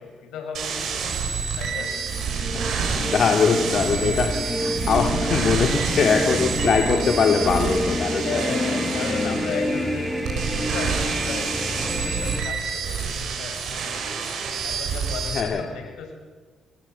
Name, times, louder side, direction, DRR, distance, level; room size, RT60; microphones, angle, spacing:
voice 1, 0.2-1.3 1.6-1.9 6.1-6.6 7.5-14.1 14.6-16.1, left 5 dB, 85° left, 4 dB, 6.7 m, -36 dB
sound 1, 0.5-15.4, right 6 dB, 70° right, 6.8 m, -28 dB
sound 2, 1.8-12.4, left 1 dB, 5° left, 7.8 m, -28 dB
voice 2, 3.0-8.4 15.3-15.9, left 6 dB, 55° left, 3 dB, 2.2 m, -22 dB
Bell, 6.6-11.6, left 1 dB, 50° right, 7.5 m, -40 dB
28.0 x 19.5 x 8.3 m, 1.4 s
cardioid pair, 90°, 0 cm